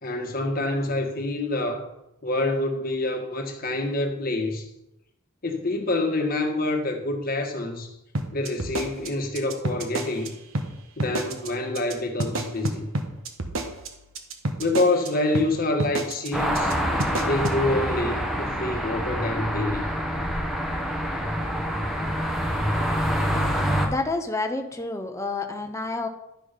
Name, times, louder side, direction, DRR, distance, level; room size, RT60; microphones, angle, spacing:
voice 1, 0.0-1.9 2.2-4.7 5.4-7.9 8.3-10.3 11.0-12.9 14.6-16.7 17.2-19.9, left 2 dB, 40° left, 1.4 m, -26 dB
sound 1, 8.1-10.3 10.5-10.7 11.0-11.5 11.7-11.9 12.2-15.1 15.3-15.5 15.8-16.3 16.5-16.7 17.0-17.6, right 2 dB, 70° right, 1.2 m, -29 dB
sound 2, 16.3-23.9, equal, ahead, 1.2 m, -26 dB
voice 2, 23.8-26.1, left 3 dB, 15° left, 0.8 m, -29 dB
11.5 x 6.1 x 5.2 m
head